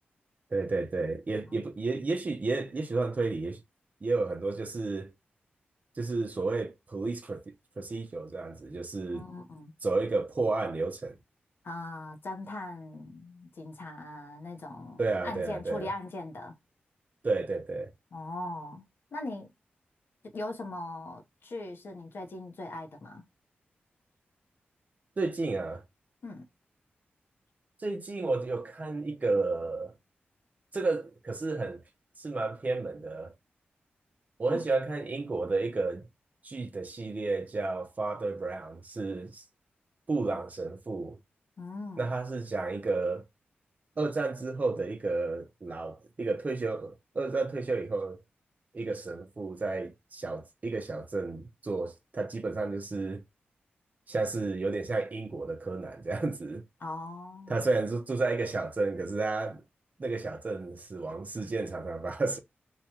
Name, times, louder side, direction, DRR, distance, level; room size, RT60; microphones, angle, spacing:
voice 1, 0.5-3.6 4.0-5.1 6.0-9.2 9.8-11.2 15.0-15.9 17.2-17.9 25.2-25.8 27.8-29.9 30.7-31.8 32.2-33.3 34.4-36.1 36.4-39.4 40.1-41.2 42.0-43.2 44.0-48.2 48.7-53.2 54.1-56.6 57.5-59.6 60.0-62.4, right 3 dB, 40° right, 0.6 m, -32 dB
voice 2, 9.1-9.7 11.6-16.6 18.1-18.8 19.1-19.5 20.2-23.3 26.2-26.5 34.5-34.6 41.6-42.1 56.8-57.6, left 2 dB, 65° left, 0.8 m, -40 dB
2.9 x 2.3 x 2.8 m
cardioid pair, 70°, 4 cm